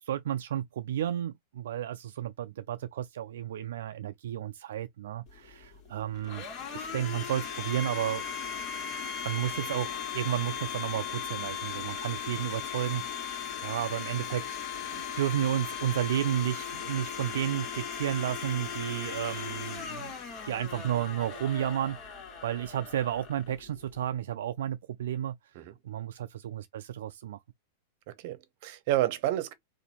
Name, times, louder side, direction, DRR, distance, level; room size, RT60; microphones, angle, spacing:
voice 1, 0.1-6.5 6.7-8.2 9.2-14.6 14.9-20.1 20.4-22.0 22.4-25.3 25.8-27.4, right 11 dB, 80° right, 0.3 m, -32 dB
Domestic sounds home sounds, 5.3-24.1, left 7 dB, 35° left, 1.7 m, -38 dB
voice 2, 28.1-29.5, right 14 dB, 50° right, 0.8 m, -30 dB
2.7 x 2.6 x 4.2 m
supercardioid pair, 145°, 0 cm